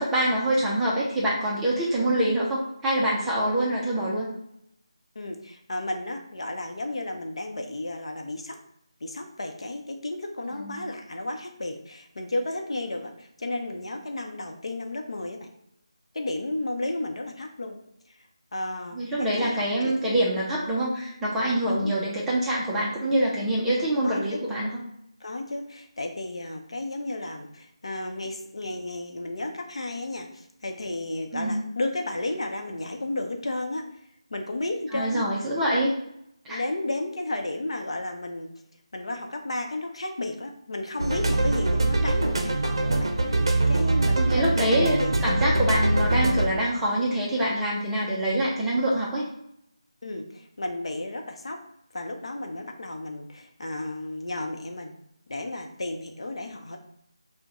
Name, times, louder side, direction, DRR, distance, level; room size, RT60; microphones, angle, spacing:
voice 1, 0.0-4.3 10.6-10.8 18.9-24.7 31.3-31.6 34.9-35.9 36.5-36.6 44.2-49.3, right 1 dB, 5° right, -6 dB, 0.4 m, -25 dB
voice 2, 5.1-8.6 9.0-15.5 16.1-17.8 18.5-20.0 20.2-20.4 21.7-22.0 24.0-24.4 25.2-33.9 34.3-35.3 35.7-35.8 36.5-38.5 38.9-45.3 45.7-45.9 50.0-51.6 51.9-55.0 55.3-56.8, left 2 dB, 65° left, 3 dB, 0.6 m, -33 dB
sound 1, 41.0-46.5, right 2 dB, 50° right, 0.6 m, -23 dB
5.1 x 2.1 x 2.9 m, 0.76 s
figure-of-eight pair, 165°, 3 cm